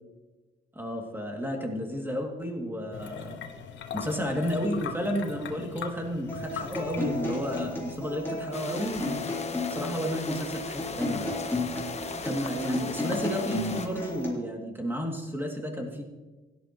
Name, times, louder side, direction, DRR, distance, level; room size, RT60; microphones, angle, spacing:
voice 1, 0.7-3.4 3.9-9.3 9.7-11.3 12.2-16.0, equal, 10° right, 1 dB, 2.6 m, -32 dB
sound 1, 2.9-7.9, left 7 dB, 70° left, 1.2 m, -40 dB
Acoustic guitar, 6.3-14.3, left 2 dB, 10° left, 3.9 m, -33 dB
sound 2, 8.5-13.9, left 5 dB, 35° left, 1.2 m, -38 dB
16.5 x 11.0 x 3.1 m, 1.2 s
cardioid pair, 90°, 20 cm